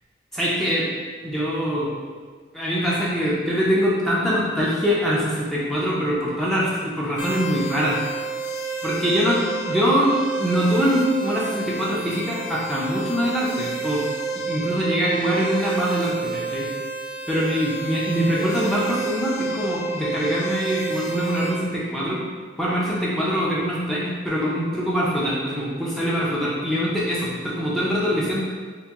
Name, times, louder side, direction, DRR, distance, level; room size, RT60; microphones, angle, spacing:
voice 1, 0.3-0.9 1.2-1.9 2.5-8.0 8.8-14.0 14.3-16.7 17.3-22.2 22.6-28.4, equal, ahead, -7 dB, 0.4 m, -23 dB
sound 1, 7.2-21.5, right 4 dB, 75° left, 0.8 m, -29 dB
2.9 x 2.6 x 3.4 m, 1.5 s
head